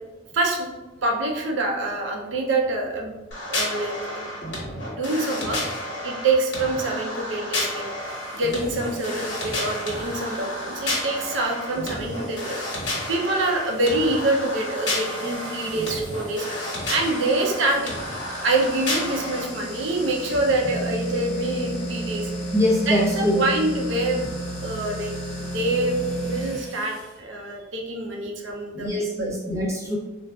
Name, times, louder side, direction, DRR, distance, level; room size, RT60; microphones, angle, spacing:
voice 1, 0.3-0.7 1.0-3.2 3.5-4.3 4.9-7.8 8.3-12.8 13.1-16.5 16.9-17.9 18.4-22.3 22.9-24.3 24.6-25.1 25.4-29.3, right 2 dB, 75° right, 1 dB, 0.5 m, -26 dB
sound 1, 3.3-19.4, left 1 dB, 65° left, 1.1 m, -31 dB
sound 2, 8.0-27.1, right 1 dB, ahead, 1.3 m, -35 dB
voice 2, 22.5-23.5 26.0-26.2 28.7-30.0, left 1 dB, 15° right, -5 dB, 0.6 m, -23 dB
3.8 x 2.3 x 2.2 m, 1.1 s
head